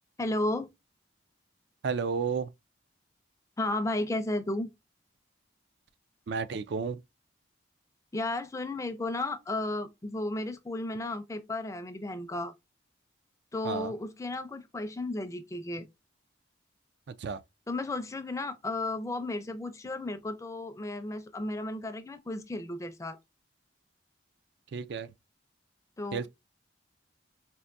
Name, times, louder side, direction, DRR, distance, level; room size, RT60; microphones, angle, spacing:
voice 1, 0.2-0.7 3.6-4.7 8.1-12.5 13.5-15.9 17.7-23.2 26.0-26.3, left 2 dB, 15° left, 0.4 m, -33 dB
voice 2, 1.8-2.5 6.3-7.0 13.6-13.9 17.2-17.4 24.7-25.1 26.1-26.3, right 5 dB, 60° right, 0.3 m, -32 dB
4.5 x 2.6 x 2.5 m
head